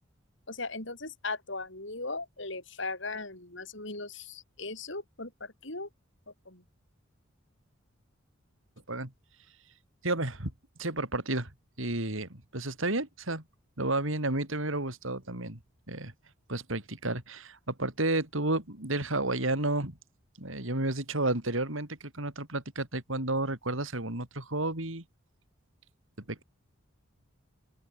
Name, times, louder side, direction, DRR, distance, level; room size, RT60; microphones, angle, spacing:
voice 1, 0.5-5.9 6.5-6.6, left 3 dB, 60° left, 5.7 m, -38 dB
voice 2, 10.0-10.5 10.8-11.5 11.8-13.4 13.8-15.6 15.9-16.1 16.5-20.0 20.4-25.0 26.3-26.4, right 2 dB, 70° right, 4.5 m, -31 dB
open air
head